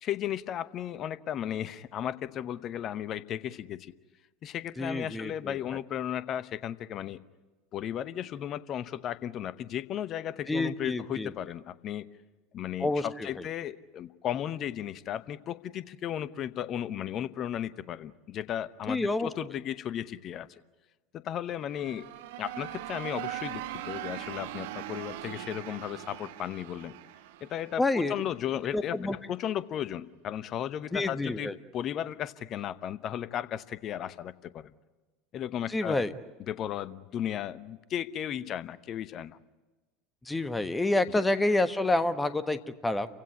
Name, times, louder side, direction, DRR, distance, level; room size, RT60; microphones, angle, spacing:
voice 1, 0.0-3.9 4.4-7.2 7.7-12.1 12.5-20.5 21.1-22.0 22.4-26.9 27.4-34.7 35.3-36.0 36.4-39.4, left 10 dB, 40° left, 16 dB, 0.9 m, -35 dB
voice 2, 4.8-5.6 10.5-11.3 12.8-13.3 18.9-19.3 27.8-28.1 28.7-29.2 30.9-31.6 35.7-36.1 40.2-43.1, left 2 dB, 10° left, 11 dB, 1.3 m, -28 dB
sound 1, 21.6-28.4, right 14 dB, 60° right, 1.0 m, -40 dB
29.5 x 16.0 x 9.9 m, 1.2 s
figure-of-eight pair, 75°, 0 cm